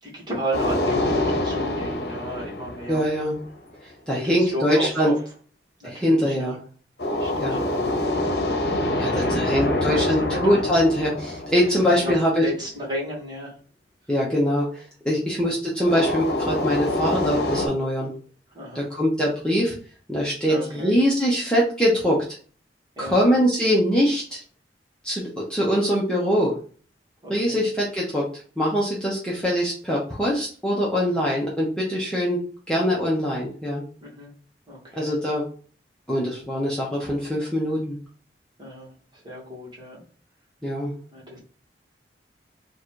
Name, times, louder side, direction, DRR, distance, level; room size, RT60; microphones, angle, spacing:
voice 1, 0.0-3.1 4.1-5.1 5.8-6.6 7.1-7.8 8.6-10.6 11.6-13.6 15.2-15.4 18.5-18.8 20.4-20.9 22.9-23.2 27.2-27.6 31.1-31.2 34.0-34.3 34.7-35.2 38.6-40.0 41.1-41.4, equal, 25° right, -4 dB, 1.7 m, -34 dB
sound 1, 0.5-3.6 7.0-12.4 15.9-17.7, left 1 dB, 65° left, 0.8 m, -26 dB
voice 2, 2.9-3.4 3.8-5.1 5.8-6.6 7.4-7.6 9.0-12.4 14.1-18.1 18.7-19.7 20.1-22.2 23.0-24.4 25.0-26.6 27.3-28.2 28.6-32.4 32.7-33.8 34.9-35.5 36.1-38.0 40.6-41.0, equal, 5° left, -5 dB, 0.9 m, -23 dB
4.0 x 2.5 x 4.5 m, 0.42 s
head